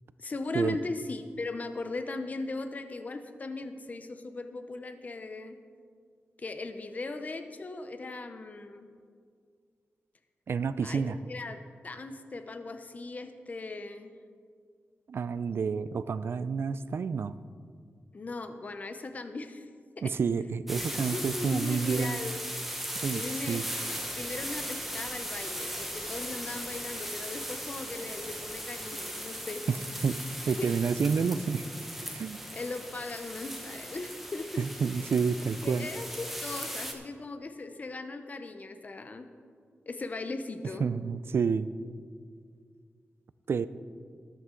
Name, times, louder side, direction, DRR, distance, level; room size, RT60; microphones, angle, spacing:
voice 1, 0.2-5.6 6.4-8.9 10.8-14.1 18.1-19.7 20.0-20.1 21.0-22.4 23.1-23.9 24.1-29.6 30.6-30.7 32.5-34.7 35.6-39.3 39.9-40.9, left 3 dB, 35° left, 8 dB, 0.7 m, -38 dB
voice 2, 10.5-11.2 15.1-17.3 20.0-22.2 23.0-23.2 23.5-23.6 29.7-29.8 30.0-30.2 30.5-31.6 32.1-32.4 34.6-35.9 40.8-41.7 43.5-43.7, right 5 dB, 60° right, 15 dB, 0.4 m, -29 dB
sound 1, 20.7-36.9, equal, 5° right, 1.0 m, -38 dB
13.5 x 11.0 x 3.8 m, 2.1 s
wide cardioid pair, 145°, 5 cm